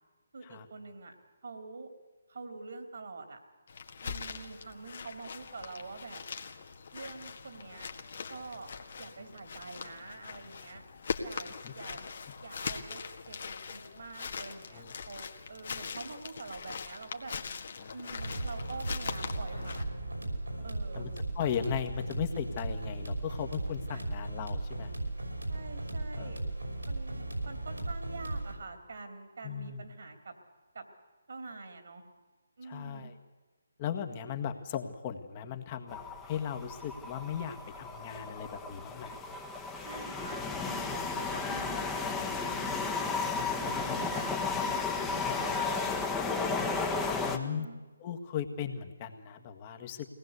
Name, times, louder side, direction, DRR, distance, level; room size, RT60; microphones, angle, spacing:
voice 1, 0.3-1.1 1.4-1.9 2.3-3.4 4.0-6.2 6.9-7.9 8.3-8.7 9.0-10.8 11.2-12.0 12.4-17.3 17.9-19.9 20.6-21.1 23.9-24.1 25.5-26.4 26.8-30.3 30.7-30.8 31.3-32.0 32.6-33.1 39.8-42.8 43.3-44.3 44.6-46.1 47.2-47.8, right 3 dB, 60° right, 6 dB, 3.2 m, -45 dB
sound 1, 3.7-19.8, left 5 dB, 55° left, 1.7 m, -42 dB
voice 2, 17.8-18.2 20.5-20.7 20.9-24.9 26.2-26.3 29.4-29.8 32.6-33.1 33.8-39.2 41.2-41.4 47.0-47.7 48.0-50.1, left 8 dB, 30° left, 6 dB, 1.7 m, -37 dB
sound 2, 18.2-28.5, right 2 dB, 85° right, 5.7 m, -36 dB
sound 3, 35.9-47.4, left 4 dB, 10° left, 1.4 m, -34 dB
23.0 x 18.5 x 8.2 m, 1.2 s
figure-of-eight pair, 145°, 0 cm